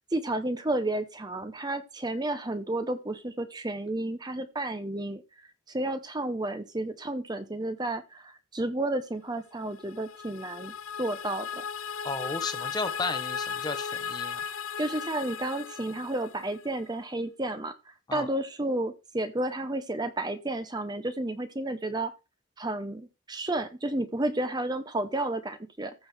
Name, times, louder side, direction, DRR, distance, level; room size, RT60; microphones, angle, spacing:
voice 1, 0.1-5.2 5.7-10.7 11.0-11.6 14.8-17.7 18.1-22.1 22.6-25.9, right 1 dB, 20° right, 10 dB, 0.8 m, -31 dB
sound 1, 9.6-16.8, left 7 dB, 80° left, 0.6 m, -36 dB
voice 2, 12.0-14.4 18.1-18.3, left 3 dB, 20° left, 10 dB, 0.8 m, -34 dB
14.5 x 6.2 x 3.5 m, 0.27 s
head